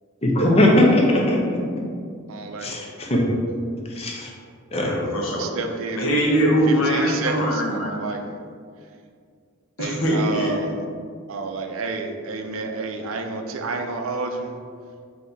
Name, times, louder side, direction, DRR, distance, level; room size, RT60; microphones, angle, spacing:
voice 1, 0.2-1.4 2.6-3.2 3.9-4.3 4.7-5.0, left 1 dB, 30° left, -1 dB, 0.7 m, -19 dB
voice 2, 2.3-2.7 5.4-6.0 6.7-7.3 7.8-8.4 9.8-10.7 11.3-14.6, right 3 dB, 85° right, 4 dB, 0.5 m, -30 dB
voice 3, 4.8-5.5 5.9-8.0 9.8-10.6, equal, 80° left, -2 dB, 0.9 m, -22 dB
4.0 x 2.8 x 3.9 m, 2.1 s
head